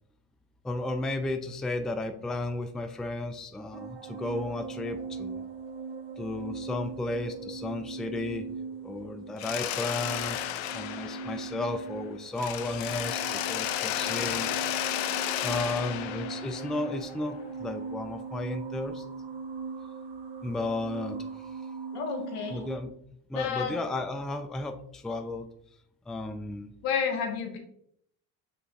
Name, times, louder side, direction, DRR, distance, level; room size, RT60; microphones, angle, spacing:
voice 1, 0.6-5.4 6.2-8.5 8.8-10.5 10.7-14.5 15.4-19.0 20.4-21.2 22.5-22.9 23.3-25.5 26.1-26.7, left 2 dB, ahead, 6 dB, 0.3 m, -33 dB
sound 1, 3.7-22.8, right 5 dB, 55° right, 1.0 m, -40 dB
Mechanisms, 9.4-12.0 12.4-17.2, left 12 dB, 70° left, 0.6 m, -33 dB
voice 2, 21.9-22.7 23.3-23.7 26.8-27.6, left 6 dB, 85° left, 4 dB, 1.0 m, -30 dB
5.8 x 3.4 x 2.5 m, 0.70 s
hypercardioid pair, 55°, 50 cm